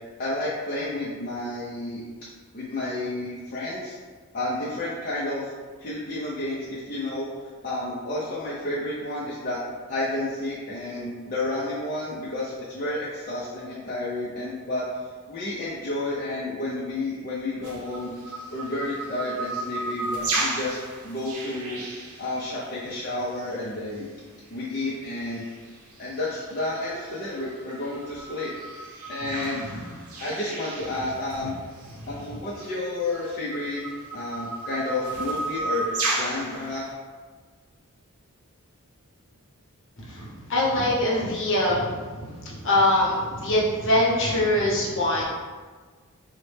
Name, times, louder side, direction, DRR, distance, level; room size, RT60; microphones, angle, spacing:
voice 1, 0.2-2.0 2.5-4.0 4.3-5.5 5.8-7.3 7.6-9.6 9.9-15.0 15.3-20.8 21.0-21.8 22.2-24.1 24.5-25.5 26.0-28.5 29.1-29.7 30.2-31.6 32.1-33.8 34.1-36.9, left 2 dB, 40° left, -7 dB, 0.5 m, -31 dB
sound 1, 17.6-22.9 24.2-24.3 24.9-25.5 25.9-31.4 31.8-31.9 32.6-36.8, right 2 dB, 75° right, 0.6 m, -33 dB
voice 2, 40.1-45.2, left 1 dB, 60° left, -4 dB, 0.8 m, -23 dB
3.9 x 2.1 x 3.2 m, 1.5 s
head